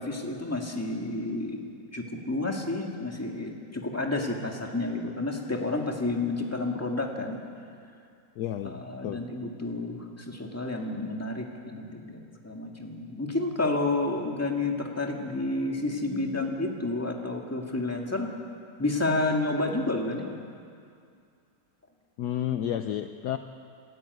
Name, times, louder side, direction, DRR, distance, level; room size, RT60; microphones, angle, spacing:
voice 1, 0.0-1.6 1.9-7.4 8.6-18.3 18.8-20.3, left 2 dB, 10° left, 1 dB, 1.9 m, -30 dB
voice 2, 8.4-9.2 22.2-23.4, left 10 dB, 65° left, 9 dB, 1.1 m, -31 dB
25.5 x 13.0 x 9.5 m, 2.4 s
omnidirectional pair, 2.1 m